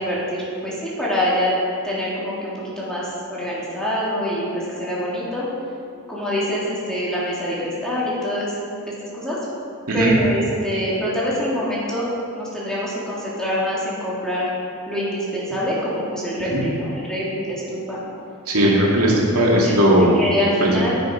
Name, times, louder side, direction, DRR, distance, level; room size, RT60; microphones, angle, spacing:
voice 1, 0.0-1.5 1.8-5.4 6.1-8.5 9.0-9.4 9.9-12.1 12.3-14.4 14.9-18.0 19.6-21.0, equal, 5° left, -8 dB, 2.8 m, -25 dB
voice 2, 18.5-20.1 20.6-20.7, right 1 dB, 80° right, -3 dB, 2.4 m, -17 dB
10.5 x 9.5 x 5.1 m, 2.5 s
head